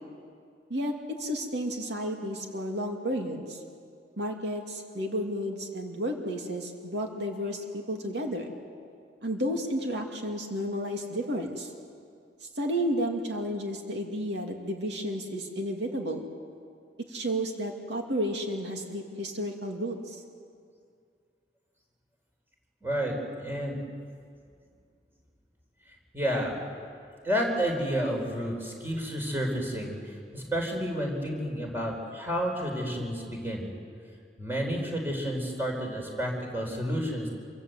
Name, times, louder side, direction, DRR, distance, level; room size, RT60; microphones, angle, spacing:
voice 1, 0.7-3.6 4.2-8.5 9.2-11.7 12.4-16.3 17.1-20.2, equal, 75° right, 2 dB, 2.6 m, -32 dB
voice 2, 22.8-23.8 26.1-26.7 27.2-33.7 34.4-37.3, equal, 15° right, 0 dB, 4.4 m, -30 dB
27.0 x 24.5 x 8.2 m, 2.2 s
head